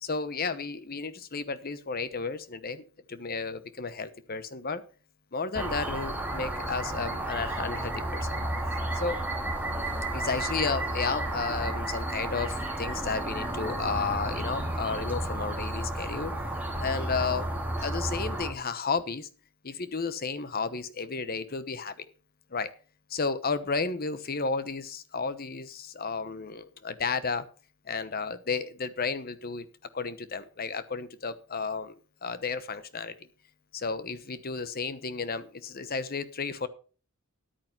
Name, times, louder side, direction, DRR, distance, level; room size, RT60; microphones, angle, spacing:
voice 1, 0.0-4.8 5.3-8.4 8.9-9.2 10.1-16.3 16.8-17.5 17.8-19.3 19.6-22.0 22.5-22.7 23.1-27.4 27.9-29.7 29.9-31.9 32.2-33.1 33.7-36.7, left 4 dB, 45° left, 13 dB, 1.0 m, -32 dB
sound 1, 5.5-18.5, right 1 dB, 10° right, 2.6 m, -32 dB
10.5 x 9.0 x 5.6 m, 0.39 s
head